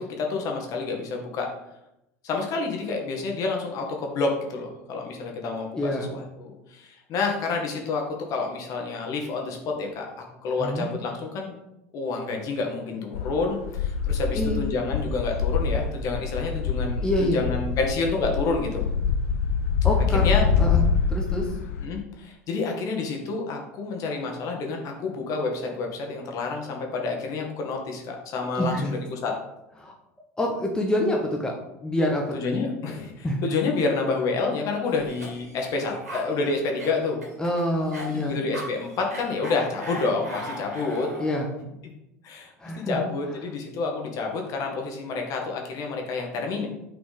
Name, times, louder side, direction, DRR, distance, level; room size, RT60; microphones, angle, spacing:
voice 1, 0.0-1.5 2.2-10.0 10.4-11.6 11.9-18.9 20.1-20.4 21.8-29.4 32.3-37.2 38.1-41.1 42.2-46.7, left 4 dB, 45° left, 1 dB, 1.4 m, -29 dB
voice 2, 5.7-6.1 10.6-10.9 14.3-14.6 17.0-17.4 19.8-20.3 20.6-21.5 28.6-29.0 29.8-29.9 30.4-32.4 33.2-33.4 37.4-38.4 41.2-41.5 42.6-43.0, left 1 dB, 10° left, 0 dB, 1.0 m, -26 dB
sound 1, 13.1-21.9, left 6 dB, 65° left, 0.5 m, -25 dB
Cough, 34.9-41.4, right 1 dB, 80° right, 1.8 m, -39 dB
6.1 x 4.0 x 3.9 m, 0.86 s
figure-of-eight pair, 75°, 8 cm